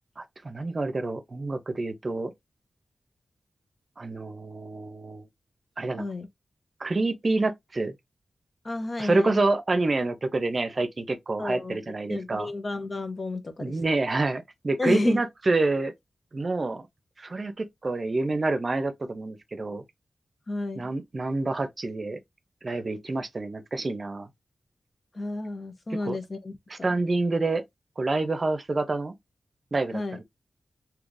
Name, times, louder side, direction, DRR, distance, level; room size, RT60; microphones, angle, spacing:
voice 1, 0.2-2.3 4.0-5.2 5.8-6.0 6.8-7.9 9.0-12.5 13.6-15.9 16.3-16.9 17.2-19.8 20.8-22.2 22.6-24.3 26.0-26.2 26.7-27.6 28.0-29.1 29.7-30.2, right 2 dB, 45° right, 0.6 m, -27 dB
voice 2, 6.0-6.3 8.6-9.4 11.4-11.8 12.1-13.8 14.8-15.2 20.5-20.8 25.2-26.5 26.8-27.0 29.9-30.2, left 2 dB, 45° left, 0.9 m, -31 dB
3.8 x 2.8 x 2.5 m
wide cardioid pair, 80°, 0 cm